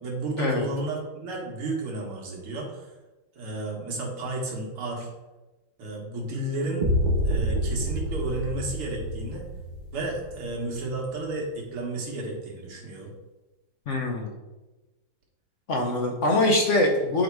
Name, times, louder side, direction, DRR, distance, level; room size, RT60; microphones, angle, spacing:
voice 1, 0.0-2.9 3.4-5.1 5.8-6.9 7.2-9.4 9.9-13.1, right 2 dB, 85° right, -1 dB, 2.4 m, -32 dB
sound 1, 6.8-10.8, equal, 30° right, 0.8 m, -28 dB
voice 2, 13.9-14.3 15.7-17.2, left 1 dB, 55° left, 1 dB, 0.8 m, -23 dB
9.0 x 3.6 x 4.6 m, 1.1 s
omnidirectional pair, 2.3 m